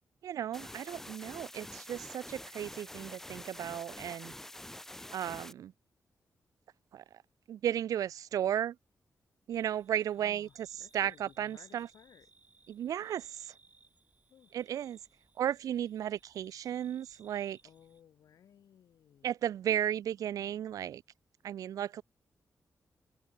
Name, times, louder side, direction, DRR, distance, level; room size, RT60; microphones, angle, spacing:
voice 1, 0.2-4.3 5.1-5.7 6.9-7.0 7.5-8.8 9.5-10.5 10.9-11.9 12.7-13.5 14.5-15.0 15.4-17.6 19.2-21.0 21.4-22.0, right 10 dB, 85° right, 0.3 m, -34 dB
sound 1, 0.5-5.5, left 1 dB, 5° left, 1.0 m, -47 dB
sound 2, 9.5-18.0, right 3 dB, 25° right, 6.9 m, -65 dB
voice 2, 10.2-12.3 14.3-14.6 17.6-19.3, left 9 dB, 85° left, 1.7 m, -59 dB
wide cardioid pair, 145°, 6 cm